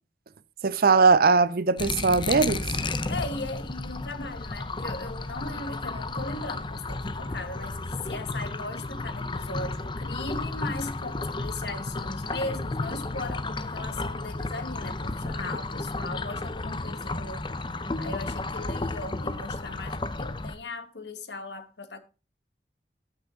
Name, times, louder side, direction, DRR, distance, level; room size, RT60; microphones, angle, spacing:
voice 1, 0.6-2.7, right 4 dB, 55° right, 0.5 m, -20 dB
sound 1, 1.8-20.5, left 2 dB, 25° left, 0.6 m, -33 dB
voice 2, 3.1-17.5 18.0-22.0, left 2 dB, 75° left, 1.4 m, -38 dB
14.5 x 6.1 x 3.7 m
head